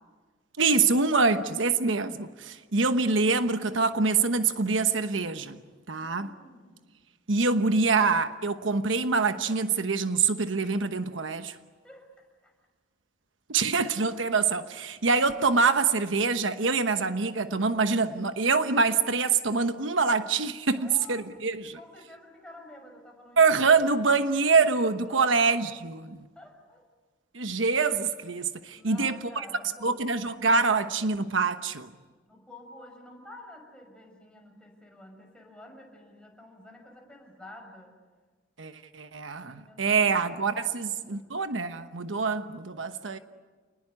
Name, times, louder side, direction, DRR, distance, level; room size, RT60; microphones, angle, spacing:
voice 1, 0.6-5.6 5.9-6.3 7.3-11.6 13.5-21.8 23.4-26.2 27.3-29.2 29.8-31.9 38.6-43.2, right 4 dB, 75° right, 1.1 m, -25 dB
voice 2, 5.9-6.8 11.8-12.1 12.4-12.5 20.7-21.3 21.7-23.5 25.1-25.4 26.3-26.8 28.8-30.0 32.3-37.9 39.5-41.3 42.8-43.2, left 1 dB, 5° left, 6.4 m, -49 dB
29.0 x 20.0 x 9.9 m
head